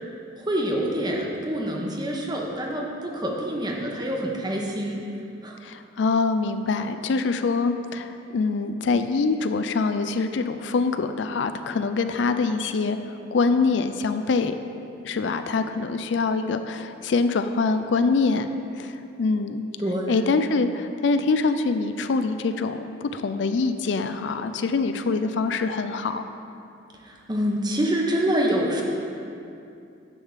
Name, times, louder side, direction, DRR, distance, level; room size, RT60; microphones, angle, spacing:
voice 1, 0.4-5.0 5.4-5.6 19.8-20.4 27.0-28.8, equal, 25° right, -1 dB, 1.0 m, -26 dB
voice 2, 5.6-13.0 13.3-14.5 15.0-19.6 20.1-26.2, left 4 dB, 70° left, 9 dB, 0.4 m, -24 dB
10.0 x 3.6 x 7.2 m, 2.6 s
head